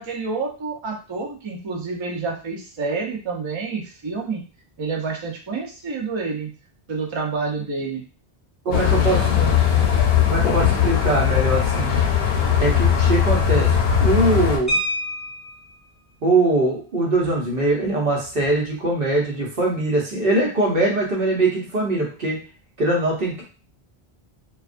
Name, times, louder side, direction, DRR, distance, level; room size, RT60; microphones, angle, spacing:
voice 1, 0.0-4.4 4.8-6.5 6.9-8.0 8.7-9.6, right 4 dB, 45° right, 0 dB, 0.4 m, -29 dB
voice 2, 8.6-9.5 10.3-12.0 12.6-13.7 14.0-14.8 16.2-22.4 22.8-23.4, right 2 dB, 65° right, -3 dB, 1.0 m, -22 dB
sound 1, 8.7-14.6, left 8 dB, 75° left, 0.8 m, -19 dB
sound 2, 14.7-15.8 17.2-17.3 17.7-17.9 18.2-18.5, equal, 20° left, 0.5 m, -27 dB
2.3 x 2.2 x 2.4 m, 0.36 s
omnidirectional pair, 1.0 m